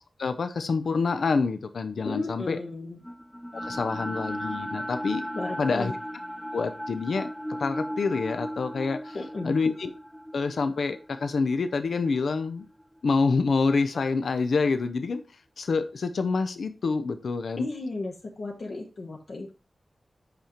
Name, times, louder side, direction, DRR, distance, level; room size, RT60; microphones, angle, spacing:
voice 1, 0.2-2.6 3.5-5.2 5.6-5.9 6.5-9.2 9.4-9.9 10.3-12.7 13.0-15.2 15.6-17.7, left 4 dB, 85° left, 9 dB, 0.5 m, -27 dB
voice 2, 2.0-3.0 5.3-5.9 9.1-9.6 17.6-19.5, left 2 dB, 60° left, -1 dB, 0.9 m, -34 dB
sound 1, 3.0-13.2, equal, 5° left, 0.4 m, -37 dB
8.1 x 5.0 x 3.0 m, 0.34 s
wide cardioid pair, 105°, 0 cm